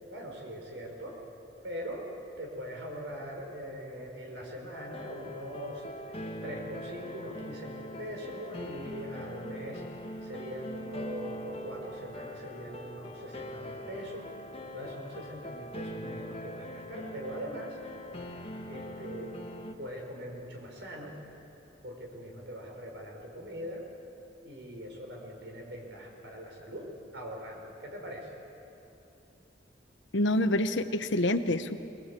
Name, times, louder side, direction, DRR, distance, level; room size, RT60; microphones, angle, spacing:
voice 1, 0.1-1.2 1.6-2.1 2.4-5.8 6.4-9.8 10.2-14.3 14.7-17.8 18.7-19.4 19.8-21.1 21.8-23.8 24.4-28.3, equal, 70° right, 1 dB, 4.9 m, -41 dB
sound 1, 4.7-19.7, equal, 30° left, 1.4 m, -42 dB
voice 2, 30.1-31.8, left 1 dB, 80° left, 10 dB, 1.0 m, -27 dB
22.5 x 20.5 x 8.3 m, 2.9 s
head